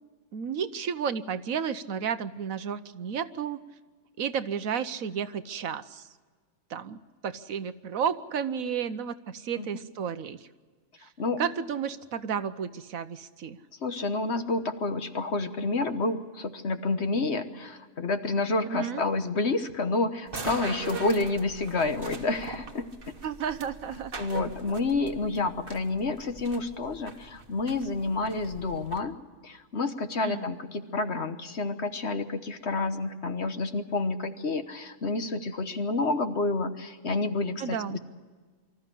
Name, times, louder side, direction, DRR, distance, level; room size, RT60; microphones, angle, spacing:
voice 1, 0.3-3.6 4.2-6.0 6.7-7.0 7.2-10.5 11.4-13.6 18.7-19.0 23.2-24.4 30.2-30.5 37.6-38.0, right 7 dB, 65° right, 12 dB, 1.2 m, -32 dB
voice 2, 13.8-22.9 24.2-29.2 29.4-38.0, left 3 dB, 50° left, 8 dB, 1.3 m, -29 dB
sound 1, 20.3-29.0, right 4 dB, 40° right, 1.4 m, -42 dB
25.0 x 14.0 x 10.0 m, 1.5 s
omnidirectional pair, 1.6 m